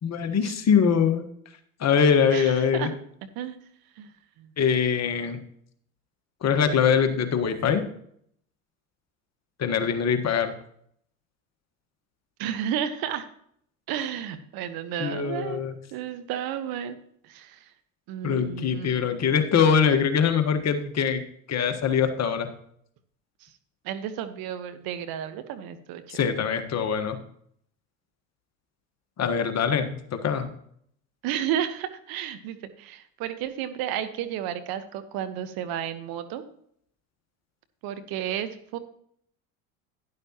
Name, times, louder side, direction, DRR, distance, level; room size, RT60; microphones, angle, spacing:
voice 1, 0.0-1.2 1.8-2.9 4.6-5.4 6.4-7.8 9.6-10.5 15.0-15.7 18.2-21.2 21.5-22.5 26.1-27.2 29.2-30.5, left 7 dB, 40° left, 7 dB, 1.5 m, -23 dB
voice 2, 2.3-3.0 3.3-3.5 4.0-4.1 4.4-4.5 12.4-13.3 13.9-15.6 15.9-17.0 17.3-17.6 18.1-19.3 23.4-23.5 23.8-26.2 31.2-36.4 37.8-38.8, right 10 dB, 55° right, 10 dB, 1.2 m, -32 dB
11.5 x 11.0 x 3.0 m, 0.66 s
hypercardioid pair, 80°, 42 cm